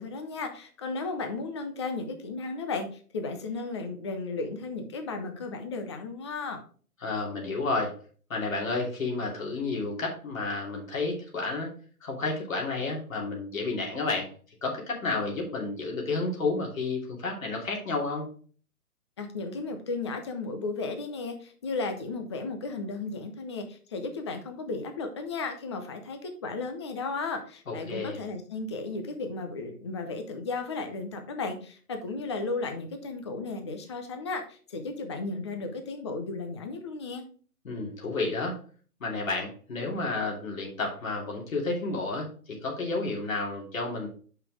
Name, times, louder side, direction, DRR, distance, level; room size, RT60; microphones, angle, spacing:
voice 1, 0.0-6.6 19.2-37.2, left 3 dB, 20° left, 6 dB, 0.6 m, -34 dB
voice 2, 7.0-7.9 8.3-11.7 12.0-14.3 14.6-18.3 27.7-28.2 37.6-38.6 39.0-44.1, left 3 dB, 60° left, -1 dB, 2.9 m, -31 dB
5.9 x 5.6 x 4.7 m, 0.43 s
figure-of-eight pair, 140°, 45 cm